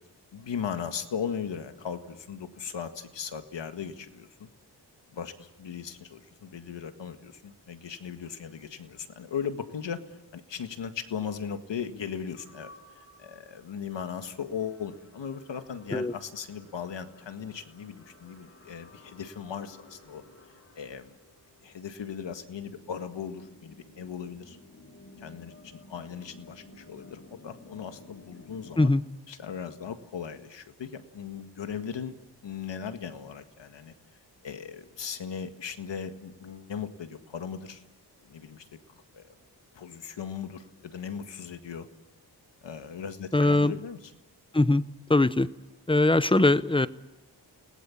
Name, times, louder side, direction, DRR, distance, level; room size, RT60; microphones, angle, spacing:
voice 1, 0.3-4.5 5.1-20.2 20.8-21.1 21.6-24.6 25.2-28.9 29.3-32.1 32.4-33.9 34.4-37.8 38.2-38.7 39.1-39.3 39.7-41.9 42.6-44.1, left 7 dB, 85° left, 8 dB, 1.8 m, -38 dB
sound 1, 12.4-28.7, left 2 dB, 35° left, 5.4 m, -55 dB
voice 2, 43.3-43.7 44.5-44.8 45.1-45.5 45.9-46.9, left 2 dB, 10° left, 15 dB, 0.8 m, -21 dB
29.5 x 19.0 x 7.2 m, 1.0 s
cardioid pair, 75°, 42 cm